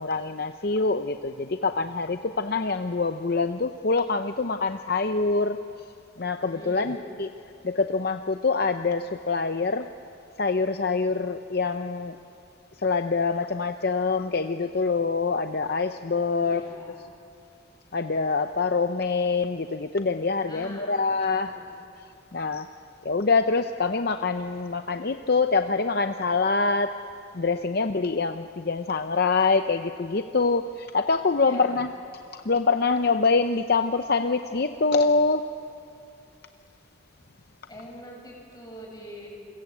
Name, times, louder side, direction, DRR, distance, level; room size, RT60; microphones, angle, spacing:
voice 1, 0.0-5.6 6.2-7.3 7.6-9.9 10.4-12.2 12.8-16.6 17.9-21.5 22.3-22.7 23.0-27.0 27.3-31.9 32.3-35.5, left 4 dB, 50° left, 8 dB, 0.7 m, -25 dB
voice 2, 6.5-7.0 16.4-17.0 20.5-21.7 31.4-32.0 37.7-39.3, equal, 20° left, -2 dB, 6.8 m, -43 dB
29.0 x 22.0 x 8.5 m, 2.4 s
head